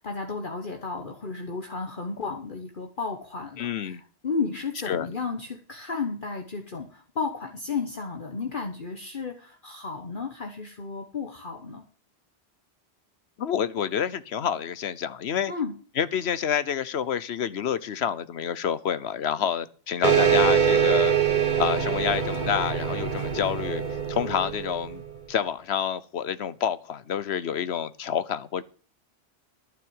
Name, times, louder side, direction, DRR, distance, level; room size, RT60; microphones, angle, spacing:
voice 1, 0.0-4.0 4.2-11.8 15.5-15.7, left 4 dB, 50° left, 1.5 m, -33 dB
voice 2, 3.6-4.0 4.9-5.1 13.4-15.5 16.0-21.1 21.6-23.8 24.1-25.0 25.3-28.6, left 8 dB, 75° left, 1.1 m, -28 dB
sound 1, 20.0-25.1, right 7 dB, 45° right, 1.4 m, -24 dB
11.5 x 6.2 x 8.8 m
omnidirectional pair, 1.1 m